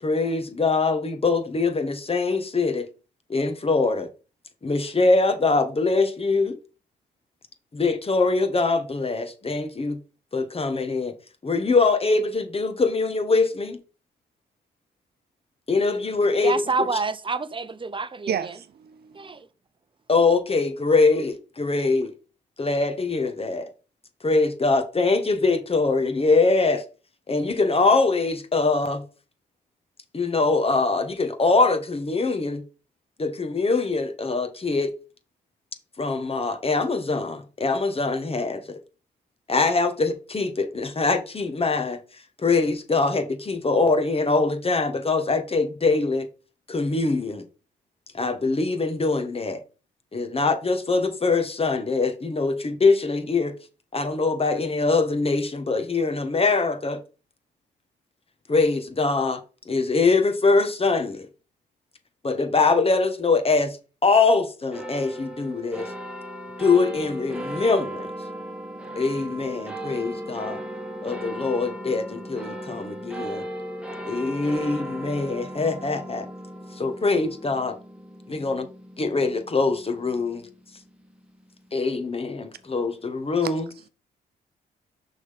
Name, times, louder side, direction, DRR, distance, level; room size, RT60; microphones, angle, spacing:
voice 1, 0.0-2.9 3.3-4.1 4.6-6.6 7.7-10.0 10.3-11.1 11.4-13.8 15.7-17.0 20.1-22.1 22.6-23.7 24.2-26.8 27.3-29.0 30.1-32.6 33.2-34.9 36.0-38.8 39.5-42.0 42.4-46.3 46.7-47.4 48.1-49.6 50.1-53.5 53.9-57.0 58.5-59.4 59.7-61.3 62.2-63.8 64.0-65.9 66.6-68.1 69.0-70.6 71.0-73.5 74.0-76.3 76.8-77.8 78.3-78.7 79.0-80.5 81.7-83.7, left 3 dB, 30° left, 1.6 m, -23 dB
voice 2, 16.4-18.3 19.2-19.4, right 4 dB, 25° right, 0.8 m, -27 dB
voice 3, 18.3-19.3 83.4-83.5, right 8 dB, 55° right, 0.9 m, -31 dB
sound 1, 64.7-81.4, right 1 dB, 5° right, 2.0 m, -37 dB
6.2 x 4.0 x 5.3 m
supercardioid pair, 55°, 19 cm